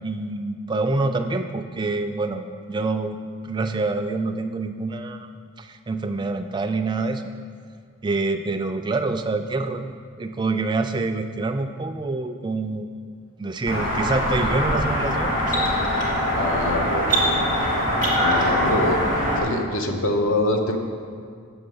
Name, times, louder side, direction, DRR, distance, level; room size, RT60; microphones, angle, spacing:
voice 1, 0.0-3.2 3.4-5.3 5.6-7.3 8.0-9.8 10.2-12.9 13.4-15.6, right 3 dB, 20° right, 6 dB, 0.3 m, -26 dB
sound 1, 13.7-19.4, equal, 35° left, 2.2 m, -22 dB
voice 2, 16.3-17.5 18.2-19.0 19.4-20.8, left 1 dB, 60° left, 3 dB, 0.8 m, -25 dB
7.8 x 6.9 x 5.4 m, 2.1 s
head